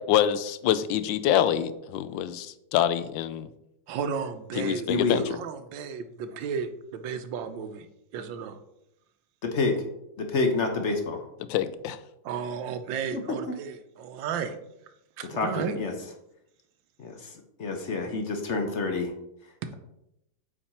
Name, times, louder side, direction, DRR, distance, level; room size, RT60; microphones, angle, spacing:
voice 1, 0.0-3.5 4.6-5.2 11.5-12.0, left 10 dB, 90° left, 14 dB, 1.3 m, -26 dB
voice 2, 3.9-7.9 8.1-8.6 12.2-14.5 15.2-15.8 19.6-19.7, right 6 dB, 85° right, 9 dB, 1.5 m, -33 dB
voice 3, 4.9-5.2 9.4-9.8 10.2-11.2 13.1-13.2 13.5-13.6 15.3-15.9 17.0-17.3 17.6-19.1, left 3 dB, 50° left, 4 dB, 1.0 m, -28 dB
8.6 x 4.8 x 4.3 m, 0.84 s
omnidirectional pair, 2.0 m